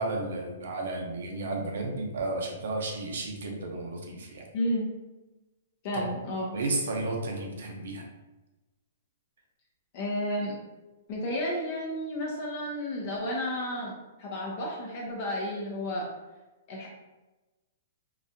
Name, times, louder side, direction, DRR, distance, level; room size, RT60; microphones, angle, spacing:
voice 1, 0.0-4.5 5.9-6.1 6.5-8.1, right 2 dB, 70° right, 2 dB, 0.8 m, -33 dB
voice 2, 4.5-4.9 5.8-6.6 9.9-10.6 11.1-13.9 14.2-16.1 16.7-16.9, left 1 dB, 40° left, -2 dB, 0.7 m, -32 dB
3.9 x 2.4 x 2.7 m, 1.1 s
hypercardioid pair, 155°, 0 cm